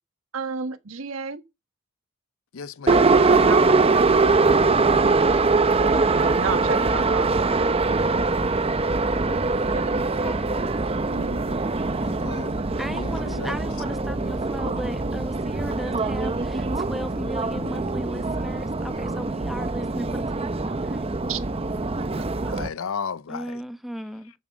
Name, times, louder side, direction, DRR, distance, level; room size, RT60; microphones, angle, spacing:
voice 1, 0.3-1.4 2.9-7.4 9.1-10.3 11.1-11.7 21.3-21.4 22.2-22.6, right 4 dB, 80° right, 1.5 m, -34 dB
voice 2, 2.5-3.2 12.0-12.6 12.9-13.6 22.5-23.6, left 6 dB, 80° left, 0.6 m, -34 dB
Subway metro underground, 2.9-22.7, right 3 dB, 30° right, 0.7 m, -23 dB
voice 3, 10.2-10.9 12.8-21.1 23.3-24.3, equal, ahead, 1.1 m, -37 dB
12.0 x 7.5 x 6.2 m
head